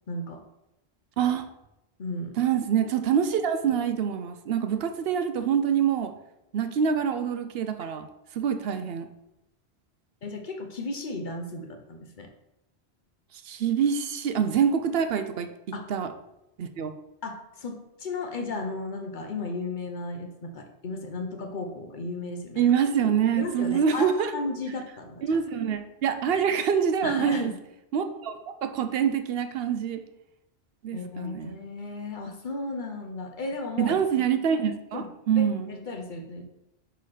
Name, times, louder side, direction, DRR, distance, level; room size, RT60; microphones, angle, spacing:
voice 1, 0.1-0.4 2.0-2.4 10.2-12.3 15.7-15.9 17.2-22.7 23.4-25.4 27.0-27.5 30.9-34.0 34.9-35.1 35.4-36.4, left 3 dB, 50° left, 4 dB, 0.9 m, -34 dB
voice 2, 2.4-6.1 6.5-8.1 8.3-9.1 13.4-15.5 15.9-16.1 16.6-16.9 22.6-24.3 25.2-27.5 27.9-30.0 30.8-31.6 33.8-35.7, right 7 dB, 70° right, 8 dB, 0.8 m, -25 dB
5.7 x 4.0 x 4.9 m, 0.87 s
omnidirectional pair, 1.1 m